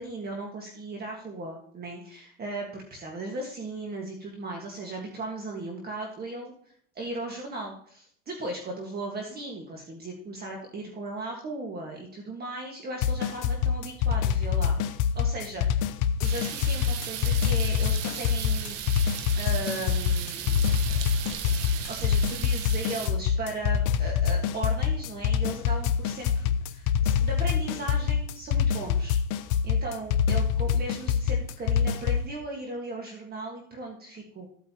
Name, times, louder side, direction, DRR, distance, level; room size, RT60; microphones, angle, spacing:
voice 1, 0.0-6.5 6.9-14.7 15.1-18.8 19.4-20.7 21.9-34.5, right 2 dB, 25° right, 0 dB, 1.6 m, -37 dB
sound 1, 13.0-32.3, left 7 dB, 55° left, 0.8 m, -25 dB
sound 2, 16.2-23.1, right 9 dB, 85° right, 1.3 m, -36 dB
15.0 x 8.3 x 2.9 m, 0.63 s
cardioid pair, 145°, 38 cm